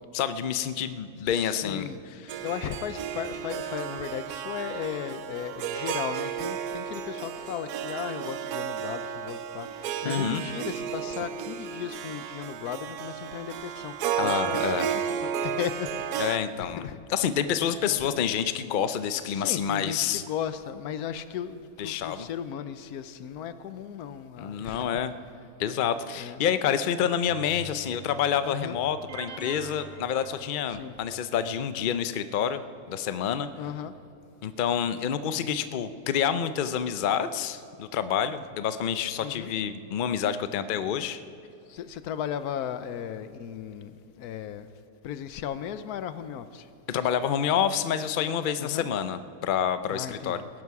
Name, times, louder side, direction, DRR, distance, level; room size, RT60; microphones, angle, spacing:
voice 1, 0.1-1.9 2.3-2.4 10.0-10.4 14.2-14.9 16.2-20.2 21.8-22.3 24.4-25.1 25.6-33.5 34.4-41.2 46.9-50.4, left 8 dB, 65° left, 12 dB, 0.4 m, -28 dB
voice 2, 1.2-2.0 2.4-17.0 17.9-18.2 19.2-24.8 26.2-26.4 28.4-28.8 30.7-31.0 33.6-34.0 39.2-39.5 41.7-44.7 45.0-46.7 48.6-48.9 49.9-50.5, left 9 dB, 85° left, 13 dB, 1.2 m, -36 dB
Harp, 2.3-16.4, right 8 dB, 90° right, 1.2 m, -33 dB
sound 1, 27.3-34.1, right 1 dB, 25° right, 0.6 m, -51 dB
sound 2, 29.1-31.2, right 5 dB, 60° right, 1.3 m, -44 dB
19.5 x 11.0 x 4.8 m, 2.7 s
omnidirectional pair, 1.6 m